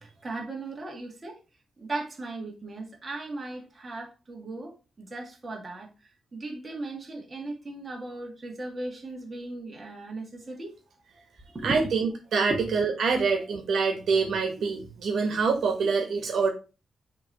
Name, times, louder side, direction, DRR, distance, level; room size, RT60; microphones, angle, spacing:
voice 1, 0.0-1.4 1.8-4.7 5.0-10.7 11.5-11.8 12.5-12.6, right 2 dB, 25° right, 1.9 m, -37 dB
voice 2, 11.6-16.5, right 5 dB, 70° right, 1.5 m, -25 dB
6.9 x 3.2 x 4.7 m
wide cardioid pair, 145°, 0 cm